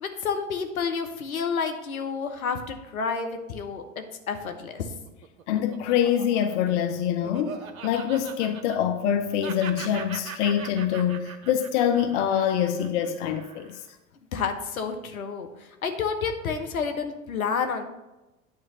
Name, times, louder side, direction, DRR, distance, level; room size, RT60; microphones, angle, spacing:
voice 1, 0.0-4.9 14.3-17.8, left 5 dB, 80° left, 1.1 m, -30 dB
Laughter, 4.9-9.1 9.4-13.9, right 6 dB, 75° right, 0.9 m, -41 dB
voice 2, 5.5-13.8, left 9 dB, 55° left, 0.7 m, -25 dB
9.3 x 3.2 x 6.7 m
hypercardioid pair, 85°, 41 cm